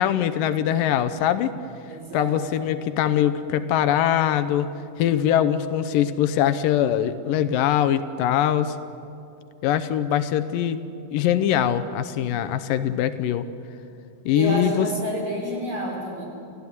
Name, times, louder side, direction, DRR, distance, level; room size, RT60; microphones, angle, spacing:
voice 1, 0.0-1.5 2.1-4.7 5.0-8.8 9.6-13.5 14.3-14.9, left 10 dB, 85° left, 12 dB, 2.5 m, -22 dB
voice 2, 1.9-2.4 14.3-16.2, equal, 35° right, -2 dB, 6.1 m, -29 dB
29.0 x 15.5 x 9.8 m, 2.6 s
omnidirectional pair, 3.9 m